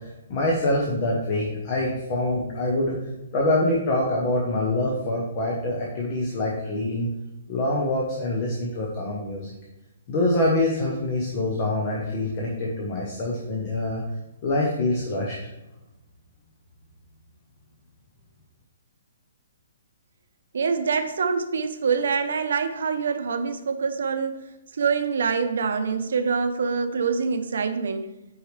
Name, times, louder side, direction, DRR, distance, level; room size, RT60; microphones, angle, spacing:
voice 1, 0.3-2.9 3.3-7.1 7.5-9.5 10.1-14.0 14.4-15.4, left 1 dB, 25° left, -2 dB, 0.9 m, -25 dB
voice 2, 20.5-24.4 24.8-28.1, right 5 dB, 65° right, 7 dB, 0.8 m, -25 dB
8.3 x 4.7 x 3.3 m, 0.98 s
hypercardioid pair, 180°, 0 cm